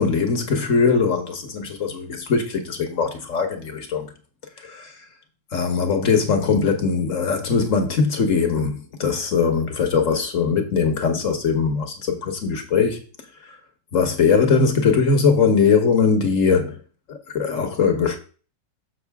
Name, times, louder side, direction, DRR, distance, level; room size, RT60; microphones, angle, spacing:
voice 1, 0.0-4.1 4.6-5.0 5.5-13.0 13.4-13.6 13.9-16.8 17.1-18.2, left 5 dB, 50° left, 1.3 m, -21 dB
6.7 x 6.5 x 3.5 m
omnidirectional pair, 1.9 m